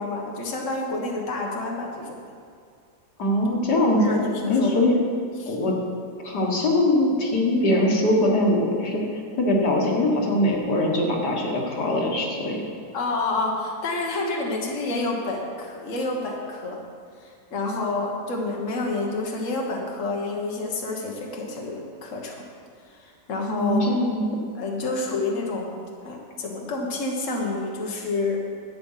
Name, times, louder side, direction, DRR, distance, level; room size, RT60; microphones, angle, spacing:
voice 1, 0.0-2.2 4.0-4.8 5.4-5.6 12.9-16.8 17.2-22.4 22.9-23.9 24.6-25.8 26.1-28.4, left 3 dB, 50° left, -1 dB, 1.7 m, -28 dB
voice 2, 3.2-4.0 4.5-4.9 5.5-5.7 6.2-12.6 23.5-24.2, left 1 dB, 85° left, -1 dB, 2.2 m, -22 dB
12.0 x 8.5 x 5.7 m, 2.2 s
omnidirectional pair, 1.7 m